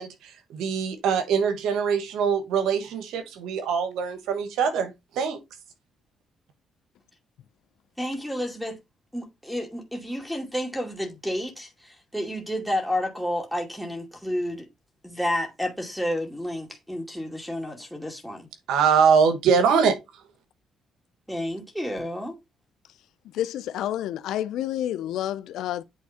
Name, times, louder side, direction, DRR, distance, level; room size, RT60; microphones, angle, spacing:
voice 1, 0.0-5.4 18.7-20.0, right 6 dB, 85° right, 1.5 m, -23 dB
voice 2, 8.0-8.8 9.1-14.7 15.0-18.5 21.3-22.4, left 1 dB, ahead, 2.3 m, -30 dB
voice 3, 23.3-25.8, left 12 dB, 85° left, 0.6 m, -29 dB
8.5 x 3.5 x 4.3 m
cardioid pair, 90°, 0 cm